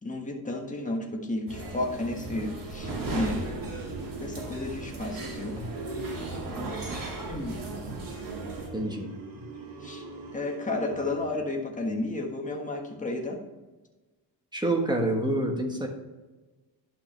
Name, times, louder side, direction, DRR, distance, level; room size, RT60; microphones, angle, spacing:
voice 1, 0.0-3.9 4.2-5.6 6.9-7.5 9.8-10.0 10.3-13.4, left 2 dB, 15° left, 1 dB, 1.5 m, -32 dB
sound 1, 1.5-8.7, right 2 dB, 50° right, 2.5 m, -36 dB
sound 2, 2.8-11.4, right 3 dB, 85° right, 1.7 m, -42 dB
voice 2, 8.7-9.1 14.5-15.9, right 1 dB, 10° right, 2 dB, 1.3 m, -27 dB
11.0 x 6.0 x 3.3 m, 1.2 s
cardioid pair, 130°, 43 cm